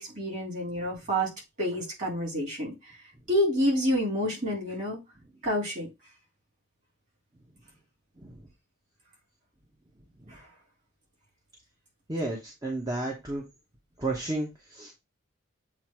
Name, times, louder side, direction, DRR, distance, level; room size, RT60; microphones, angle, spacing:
voice 1, 0.0-1.3 1.6-2.7 3.3-5.0 5.4-5.9 10.3-10.4, equal, 35° right, 3.6 m, -28 dB
voice 2, 12.1-13.4 14.0-15.0, right 2 dB, 20° right, 1.1 m, -33 dB
8.0 x 2.7 x 4.5 m
head